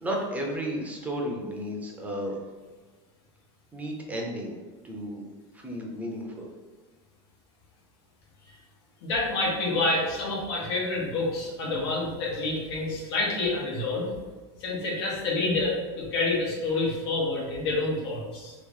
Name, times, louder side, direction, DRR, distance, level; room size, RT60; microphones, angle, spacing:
voice 1, 0.0-2.4 3.7-4.5 4.8-5.2 5.5-6.5, equal, 10° right, -1 dB, 0.6 m, -33 dB
voice 2, 9.0-14.1 14.6-18.5, left 2 dB, 80° left, -4 dB, 1.3 m, -28 dB
3.1 x 2.5 x 3.7 m, 1.3 s
supercardioid pair, 140°, 14 cm